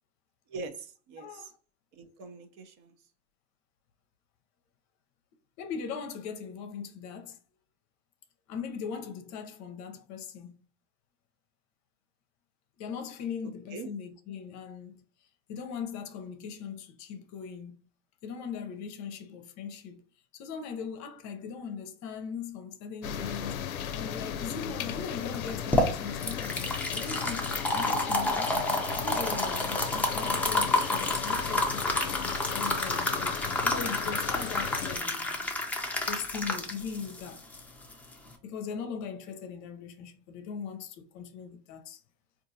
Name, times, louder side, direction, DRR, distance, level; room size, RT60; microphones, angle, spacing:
voice 1, 0.5-1.4 2.0-2.9 13.7-13.9, right 4 dB, 45° right, 0.7 m, -42 dB
voice 2, 1.2-1.6 5.6-7.4 8.5-10.6 12.8-17.7 18.2-20.0 20.3-28.5 28.9-33.4 33.6-35.4 36.0-37.5 38.4-42.0, left 6 dB, 45° left, 0.7 m, -40 dB
sound 1, 23.0-35.0, left 8 dB, 90° left, 0.6 m, -36 dB
sound 2, 25.3-38.3, left 2 dB, 5° left, 0.5 m, -30 dB
3.8 x 2.5 x 2.6 m
hypercardioid pair, 105°, 41 cm